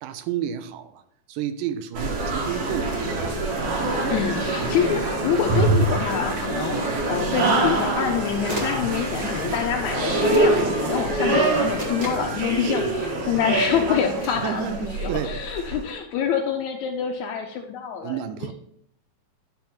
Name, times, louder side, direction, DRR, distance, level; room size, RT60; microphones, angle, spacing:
voice 1, 0.0-1.0 1.3-3.4 12.6-12.9 14.4-15.4 18.0-18.5, right 10 dB, 80° right, 10 dB, 2.1 m, -31 dB
sound 1, 1.9-15.8, right 2 dB, 55° right, 2.0 m, -25 dB
voice 2, 4.1-18.5, left 7 dB, 80° left, 3 dB, 1.7 m, -26 dB
sound 2, 8.0-8.1 8.5-8.9 10.3-10.5 11.8-12.3 14.2-14.4, equal, 30° right, 1.8 m, -34 dB
Chicken rooster, 8.9-11.8, left 4 dB, 55° left, 2.0 m, -40 dB
10.5 x 3.5 x 5.9 m, 0.75 s
omnidirectional pair, 3.9 m